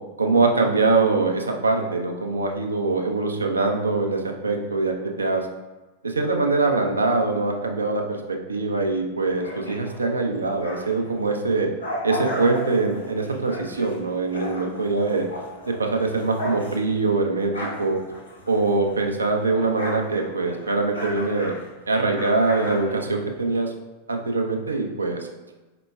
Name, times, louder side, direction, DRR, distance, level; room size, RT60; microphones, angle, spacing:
voice 1, 0.2-5.5 6.0-11.7 12.0-15.3 15.7-18.0 18.5-21.6 21.9-23.7 24.1-25.3, right 3 dB, 75° right, 2 dB, 0.4 m, -23 dB
sound 1, 9.3-11.1 11.5-19.1 19.3-23.6, equal, 75° left, 1.3 m, -35 dB
4.2 x 2.9 x 2.3 m, 1.2 s
figure-of-eight pair, 90°, 0 cm